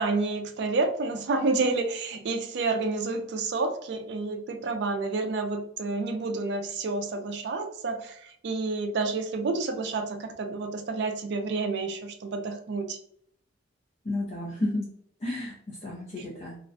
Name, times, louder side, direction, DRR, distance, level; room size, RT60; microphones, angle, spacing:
voice 1, 0.0-13.0, right 3 dB, 60° right, 6 dB, 0.4 m, -29 dB
voice 2, 14.0-14.9 15.2-16.6, left 1 dB, 35° left, -5 dB, 0.5 m, -32 dB
2.4 x 2.1 x 2.5 m, 0.68 s
head